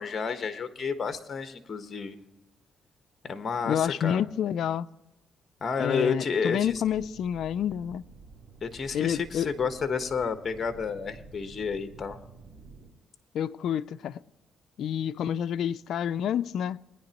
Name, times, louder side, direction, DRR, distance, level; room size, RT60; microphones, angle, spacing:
voice 1, 0.0-2.2 3.2-4.2 5.6-6.7 8.6-12.2, left 5 dB, 40° left, 1.3 m, -30 dB
voice 2, 3.7-4.9 5.8-8.0 8.9-9.5 13.3-14.2 14.8-16.8, left 9 dB, 70° left, 0.4 m, -28 dB
sound 1, 6.6-12.9, right 4 dB, 45° right, 4.0 m, -50 dB
21.5 x 10.0 x 3.0 m
cardioid pair, 90°, 0 cm